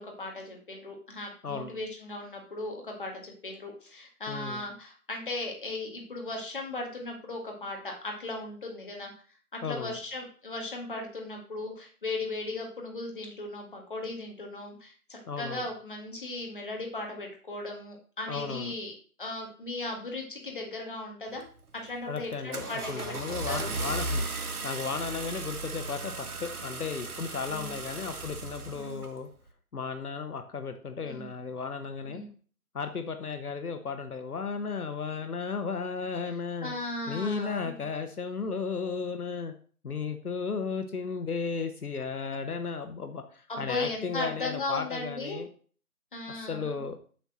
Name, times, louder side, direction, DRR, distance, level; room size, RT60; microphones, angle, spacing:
voice 1, 0.0-9.1 9.5-18.9 19.2-21.4 21.7-23.7 27.5-27.7 28.7-29.0 31.0-31.3 32.0-32.3 36.6-37.8 43.5-45.4 46.1-46.8, left 2 dB, 35° left, 1 dB, 1.9 m, -37 dB
voice 2, 1.4-1.8 4.3-4.6 9.6-10.0 15.3-15.6 18.3-18.7 22.1-24.3 24.6-29.3 29.7-32.2 32.7-36.7 37.1-39.5 39.8-45.5 46.3-47.0, left 5 dB, 80° left, 8 dB, 1.1 m, -34 dB
Car / Engine starting, 21.4-21.7 22.2-29.1, right 2 dB, 80° right, 1.6 m, -36 dB
8.0 x 4.2 x 6.3 m, 0.42 s
figure-of-eight pair, 175°, 44 cm